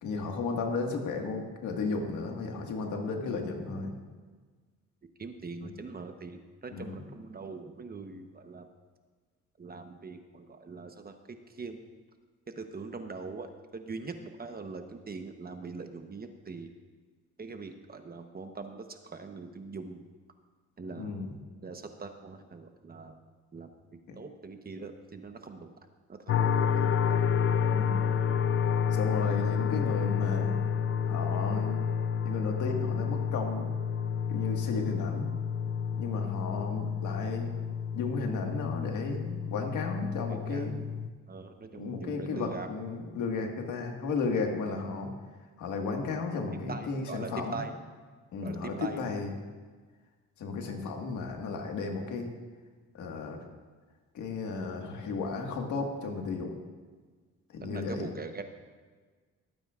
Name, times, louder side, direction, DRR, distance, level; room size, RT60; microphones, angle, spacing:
voice 1, 0.0-4.0 5.6-5.7 6.7-7.1 21.0-21.4 24.1-24.2 27.7-28.1 28.9-30.6 31.1-31.8 32.2-33.7 34.3-35.3 35.9-37.5 37.9-40.8 41.7-45.1 45.6-47.6 48.3-49.3 50.4-52.3 52.9-53.4 54.1-56.5 57.5-58.1, left 4 dB, 75° left, 2 dB, 1.8 m, -34 dB
voice 2, 5.2-8.7 9.6-11.8 12.6-16.7 17.4-20.0 20.8-21.1 21.6-23.2 23.5-23.7 24.2-25.7 26.1-26.9 40.3-40.6 41.3-42.7 46.7-47.7 48.4-49.0 57.6-58.4, right 4 dB, 30° right, 6 dB, 1.0 m, -42 dB
sound 1, 26.3-41.1, left 7 dB, 45° left, 0.5 m, -29 dB
22.5 x 9.0 x 2.5 m, 1.4 s
cardioid pair, 90°, 30 cm